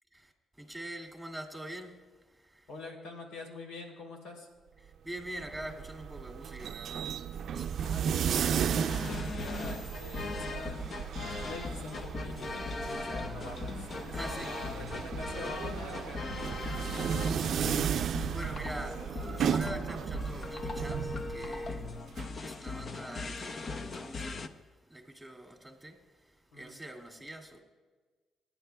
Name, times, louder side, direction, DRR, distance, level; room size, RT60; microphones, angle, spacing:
voice 1, 0.1-2.0 2.3-2.7 4.8-7.1 7.5-8.0 14.1-14.5 18.3-21.9 22.4-24.6 24.9-27.6, right 1 dB, ahead, 2.3 m, -44 dB
voice 2, 2.7-4.5 7.8-10.9 11.1-17.7 26.5-26.8, left 2 dB, 85° left, 3.2 m, -46 dB
sound 1, 5.2-22.2, right 8 dB, 65° right, 0.4 m, -35 dB
sound 2, 8.7-24.5, left 3 dB, 45° left, 0.7 m, -39 dB
28.0 x 10.0 x 2.3 m
cardioid pair, 90°, 0 cm